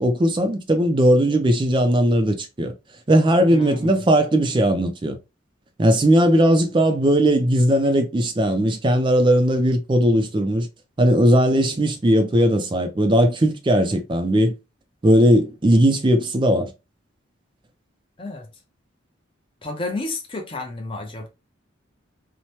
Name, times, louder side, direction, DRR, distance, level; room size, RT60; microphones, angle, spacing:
voice 1, 0.0-2.7 3.1-5.2 5.8-10.7 11.0-14.6 15.0-16.7, right 1 dB, 25° right, 0.4 m, -18 dB
voice 2, 3.5-4.0 18.2-18.5 19.6-21.3, left 2 dB, 25° left, 0.6 m, -31 dB
2.8 x 2.1 x 3.0 m
head